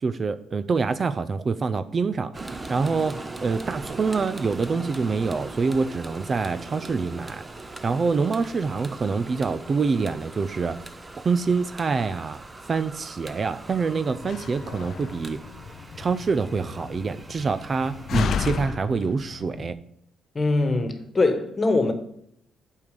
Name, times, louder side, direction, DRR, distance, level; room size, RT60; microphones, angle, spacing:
voice 1, 0.0-2.3 2.7-7.4 7.8-10.8 11.2-12.4 12.7-15.4 16.0-19.8, right 4 dB, 40° right, 0.4 m, -26 dB
sound 1, 2.3-18.7, right 2 dB, 20° right, 0.8 m, -40 dB
Slam, 14.1-19.7, left 7 dB, 65° left, 0.4 m, -33 dB
voice 2, 20.3-21.9, left 3 dB, 30° left, 1.3 m, -22 dB
8.6 x 4.7 x 6.6 m
cardioid pair, 90°, 0 cm